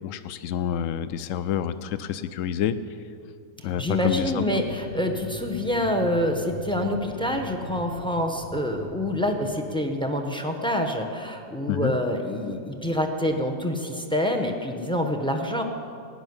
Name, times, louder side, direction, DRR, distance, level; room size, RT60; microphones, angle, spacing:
voice 1, 0.0-2.8 3.6-4.5 11.7-11.9, left 10 dB, 65° left, 13 dB, 0.8 m, -28 dB
sound 1, 3.6-9.5, left 1 dB, 30° left, 2.9 m, -40 dB
voice 2, 3.6-15.6, left 1 dB, 5° left, 3 dB, 0.5 m, -26 dB
15.5 x 6.3 x 9.6 m, 2.5 s
omnidirectional pair, 1.8 m